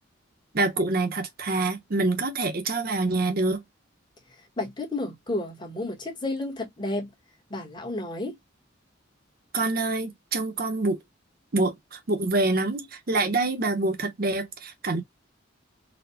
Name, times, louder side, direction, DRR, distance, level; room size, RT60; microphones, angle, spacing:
voice 1, 0.5-3.6 9.5-11.0 11.5-15.0, right 2 dB, 50° right, 0.8 m, -26 dB
voice 2, 4.6-7.1 7.5-8.4, left 2 dB, 25° left, 1.2 m, -31 dB
4.1 x 2.2 x 2.7 m
head